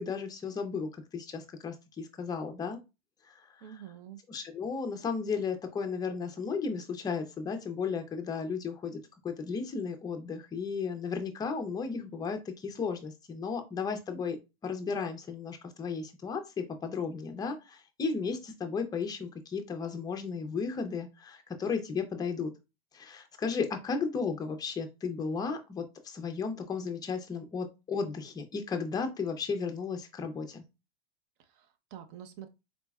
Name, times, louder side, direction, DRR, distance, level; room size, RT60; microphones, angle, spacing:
voice 1, 0.0-2.8 3.2-3.5 4.3-9.0 9.2-14.4 14.6-22.5 22.9-30.6, left 5 dB, 15° left, 5 dB, 0.5 m, -34 dB
voice 2, 3.6-4.2 31.4-32.5, right 10 dB, 60° right, 9 dB, 0.8 m, -47 dB
4.1 x 3.0 x 2.3 m, 0.26 s
supercardioid pair, 145°, 31 cm